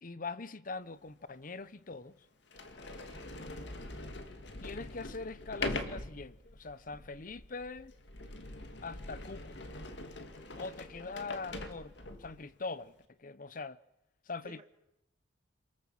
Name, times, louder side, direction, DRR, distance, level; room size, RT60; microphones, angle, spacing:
voice 1, 0.0-2.3 4.6-7.9 8.8-9.8 10.6-12.9 13.2-13.8 14.3-14.6, left 3 dB, 45° left, 0.8 m, -42 dB
Sliding door, 1.1-1.2 1.9-2.0 2.5-12.4, left 2 dB, 60° left, 2.3 m, -43 dB
voice 2, 2.9-3.3 10.5-11.3 14.4-14.6, right 1 dB, 30° right, 2.1 m, -57 dB
27.5 x 19.5 x 7.4 m
head